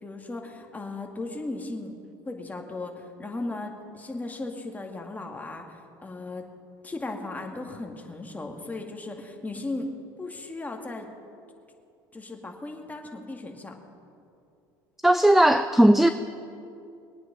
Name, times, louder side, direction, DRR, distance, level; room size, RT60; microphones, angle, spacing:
voice 1, 0.0-1.9 2.3-6.4 6.8-9.9 10.2-11.1 12.1-13.8, left 2 dB, 15° left, 2 dB, 2.2 m, -36 dB
voice 2, 15.0-16.1, right 1 dB, ahead, 11 dB, 0.5 m, -17 dB
22.0 x 9.1 x 5.3 m, 2.6 s
hypercardioid pair, 85°, 11 cm